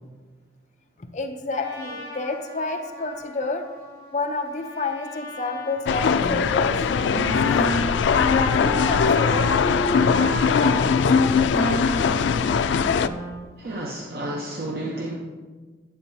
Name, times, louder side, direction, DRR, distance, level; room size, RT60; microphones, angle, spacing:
voice 1, 1.0-3.7 4.1-7.9 8.2-10.2 10.5-11.9 12.2-12.3, left 3 dB, 40° left, 4 dB, 0.6 m, -30 dB
Trumpet, 1.5-7.0, left 2 dB, 25° right, 2.6 m, -41 dB
sound 1, 5.9-13.1, left 6 dB, 85° left, 0.3 m, -21 dB
Wind instrument woodwind instrument, 6.1-13.6, right 1 dB, 20° left, 1.2 m, -30 dB
voice 2, 13.6-15.2, right 1 dB, 55° right, -1 dB, 0.8 m, -31 dB
8.8 x 8.0 x 2.7 m, 1.4 s
head